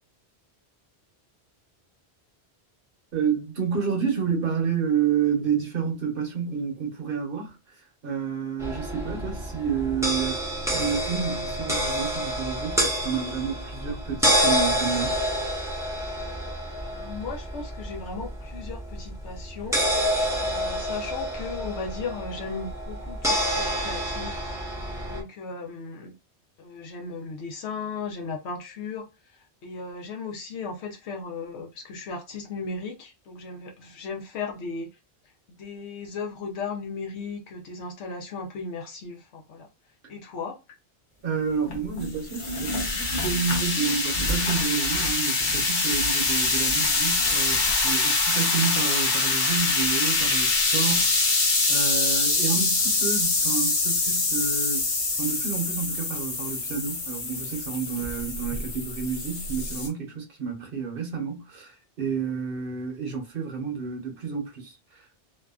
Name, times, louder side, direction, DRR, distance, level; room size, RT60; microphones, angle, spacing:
voice 1, 3.1-10.4 10.7-15.2 41.2-54.9 55.2-65.2, right 6 dB, 60° right, 0.9 m, -30 dB
sound 1, 8.6-25.2, equal, 5° right, 0.5 m, -28 dB
voice 2, 16.8-19.8 20.4-24.4 25.0-26.1 26.6-34.9 35.6-39.7 40.1-40.6, left 4 dB, 80° left, 0.9 m, -36 dB
sound 2, 41.7-59.9, left 3 dB, 50° left, 0.9 m, -25 dB
2.7 x 2.3 x 2.3 m
omnidirectional pair, 1.1 m